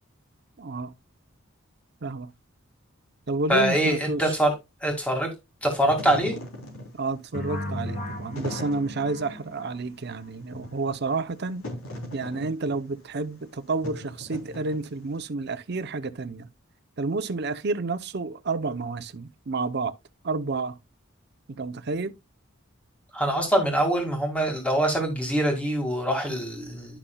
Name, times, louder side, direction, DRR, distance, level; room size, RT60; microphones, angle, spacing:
voice 1, 0.6-0.9 2.0-2.3 3.3-4.3 7.0-11.6 12.1-16.5 17.0-20.0 20.2-20.8 21.5-22.1, right 3 dB, 50° right, 0.6 m, -30 dB
voice 2, 3.5-4.5 4.8-5.3 5.6-6.3 23.1-27.0, right 1 dB, 5° left, 2.0 m, -24 dB
Wind / Fire, 5.8-15.2, left 1 dB, 85° left, 3.2 m, -40 dB
sound 1, 7.3-10.2, left 1 dB, 40° left, 1.3 m, -36 dB
11.0 x 5.9 x 2.2 m
head